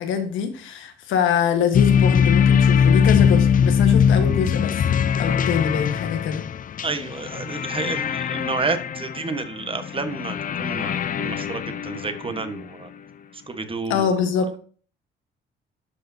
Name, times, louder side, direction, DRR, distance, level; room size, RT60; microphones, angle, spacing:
voice 1, 0.0-4.8 5.2-6.4 13.9-14.6, left 7 dB, 90° left, 1.4 m, -24 dB
sound 1, 1.7-12.6, left 7 dB, 45° left, 0.5 m, -21 dB
voice 2, 6.8-12.9 13.5-14.1, right 4 dB, 25° right, 1.3 m, -30 dB
12.0 x 4.8 x 2.8 m
cardioid pair, 90°, 20 cm